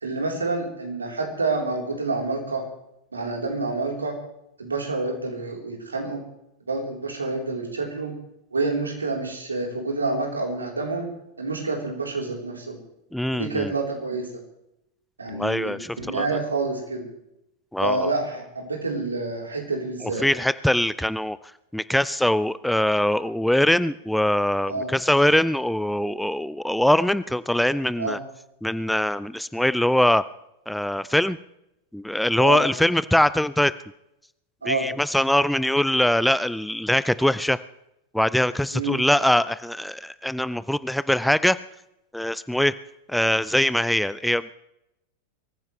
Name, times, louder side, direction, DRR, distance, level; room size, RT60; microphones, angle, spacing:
voice 1, 0.0-2.6 3.1-4.2 4.6-6.2 6.7-8.1 8.5-11.1 11.4-12.8 13.3-14.3 15.2-17.1 17.8-20.3 24.7-24.9 28.0-28.2 32.4-32.6 34.6-34.9 38.7-39.0, right 3 dB, 75° right, 1 dB, 4.0 m, -28 dB
voice 2, 13.1-13.7 15.3-16.3 17.7-18.1 20.0-21.4 21.7-28.2 28.6-30.2 30.7-31.4 31.9-33.7 34.6-37.6 38.1-41.6 42.1-42.7 43.1-44.5, left 1 dB, ahead, 16 dB, 0.4 m, -22 dB
23.5 x 15.0 x 3.3 m, 0.84 s
figure-of-eight pair, 90°, 0 cm